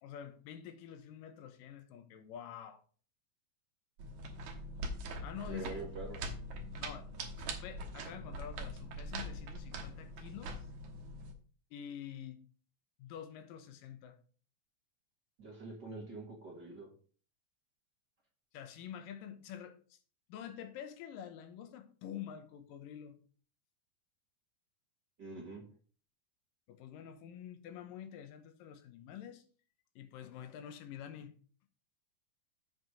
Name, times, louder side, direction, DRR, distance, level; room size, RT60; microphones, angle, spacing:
voice 1, 0.0-2.8 5.2-5.8 6.8-7.1 7.4-10.7 11.7-12.4 13.0-14.2 18.5-20.0 20.3-23.2 26.7-29.4 30.0-31.4, left 9 dB, 85° left, 10 dB, 2.6 m, -47 dB
sound 1, 4.0-11.3, right 1 dB, 70° right, 2.6 m, -43 dB
voice 2, 5.5-6.2 15.4-16.9 25.2-25.6, right 3 dB, 35° right, 0 dB, 2.1 m, -45 dB
8.0 x 4.7 x 6.2 m, 0.42 s
omnidirectional pair, 3.8 m